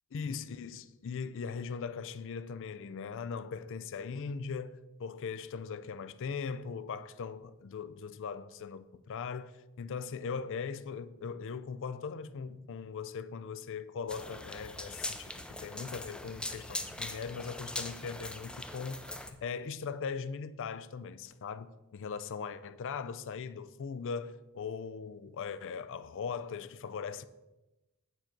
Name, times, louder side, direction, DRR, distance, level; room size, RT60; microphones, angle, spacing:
voice 1, 0.1-27.3, left 5 dB, 60° left, 0.4 m, -40 dB
sound 1, 14.1-19.3, left 1 dB, 5° left, 0.5 m, -41 dB
9.1 x 3.8 x 5.8 m
head